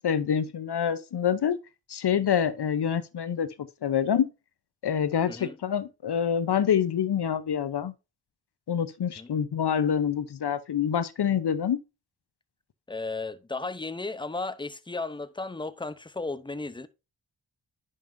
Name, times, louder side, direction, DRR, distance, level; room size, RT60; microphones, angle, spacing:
voice 1, 0.0-1.6 1.9-3.5 3.8-4.3 4.8-7.9 8.7-11.8, left 8 dB, 55° left, 0.8 m, -26 dB
voice 2, 12.9-16.9, left 3 dB, 10° left, 0.7 m, -34 dB
10.0 x 5.5 x 2.6 m
supercardioid pair, 40°, 50 cm